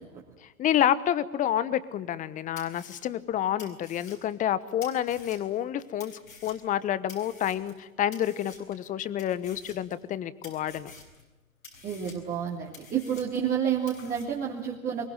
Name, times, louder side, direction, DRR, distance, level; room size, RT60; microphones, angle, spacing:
voice 1, 0.4-6.1 6.4-10.9, left 11 dB, 20° left, 17 dB, 1.1 m, -29 dB
sound 1, 2.1-2.2 2.6-5.6 6.0-7.8 8.1-8.8 9.2-10.2 10.4-11.2 11.6-13.6 13.9-14.2, left 4 dB, 80° left, 6.9 m, -49 dB
voice 2, 11.8-15.1, right 8 dB, 20° right, -2 dB, 3.1 m, -30 dB
24.0 x 23.0 x 9.0 m, 1.1 s
figure-of-eight pair, 110°, 41 cm